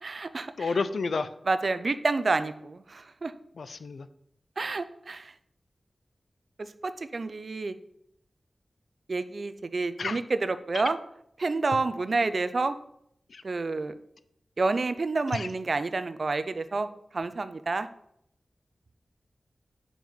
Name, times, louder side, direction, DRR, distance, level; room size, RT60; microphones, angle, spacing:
voice 1, 0.0-0.8 1.5-3.3 4.6-5.3 6.6-7.7 9.1-11.0 11.4-12.8 13.4-13.9 14.6-16.9 17.1-17.9, right 3 dB, 55° right, 12 dB, 0.5 m, -29 dB
voice 2, 0.6-1.3 3.6-4.1 10.0-10.2 13.3-13.4 15.3-15.5, left 4 dB, 80° left, 13 dB, 0.5 m, -30 dB
7.6 x 5.4 x 5.6 m, 0.74 s
wide cardioid pair, 95°, 0 cm